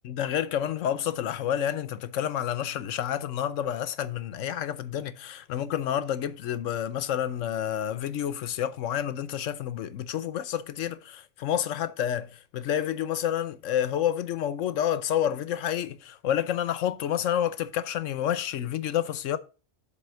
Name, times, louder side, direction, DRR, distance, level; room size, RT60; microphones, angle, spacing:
voice 1, 0.0-19.4, left 10 dB, 90° left, 1.1 m, -29 dB
7.6 x 4.0 x 6.8 m
omnidirectional pair, 1.3 m